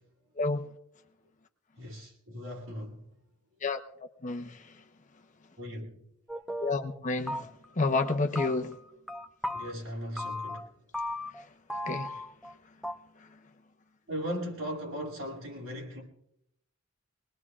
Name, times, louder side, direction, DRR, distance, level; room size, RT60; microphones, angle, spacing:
voice 1, 1.8-3.1 5.6-6.0 9.5-10.7 14.1-16.0, equal, 80° right, 7.8 m, -38 dB
sound 1, 6.3-7.0 7.3-7.7 8.0-9.7 10.2-10.7 10.9-11.4 11.7-12.5 12.8-12.9, left 1 dB, ahead, 0.6 m, -36 dB
voice 2, 6.6-7.5 7.8-8.7 11.9-12.1, left 3 dB, 35° left, 1.0 m, -29 dB
24.0 x 20.5 x 2.5 m
head